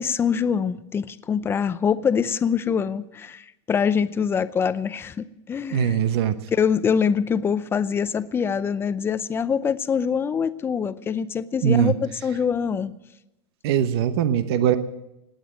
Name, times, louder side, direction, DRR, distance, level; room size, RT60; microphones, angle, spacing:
voice 1, 0.0-6.0 6.5-12.9, left 7 dB, 15° left, 14 dB, 0.6 m, -24 dB
voice 2, 5.7-6.4 11.6-11.9 13.6-14.8, right 9 dB, 60° right, 11 dB, 1.0 m, -21 dB
18.5 x 9.1 x 7.6 m, 0.89 s
supercardioid pair, 135°, 15 cm